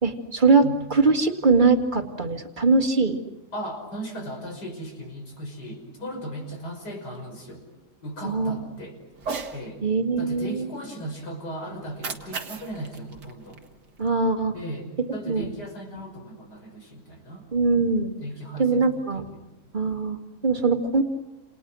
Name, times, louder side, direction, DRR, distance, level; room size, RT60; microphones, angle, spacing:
voice 1, 0.0-0.6 0.9-3.2 8.2-8.6 9.8-10.7 14.0-14.5 15.3-15.5 17.5-18.1 18.6-19.2 19.7-21.0, right 4 dB, 30° right, 5 dB, 2.2 m, -22 dB
voice 2, 3.5-7.6 8.0-9.0 9.5-9.8 10.2-13.6 14.5-17.5 18.2-19.5, right 1 dB, 80° left, 2 dB, 6.3 m, -37 dB
Cat, 9.1-9.6 11.8-14.1, right 4 dB, 80° right, 2.4 m, -36 dB
30.0 x 28.5 x 6.3 m, 1.1 s
omnidirectional pair, 1.7 m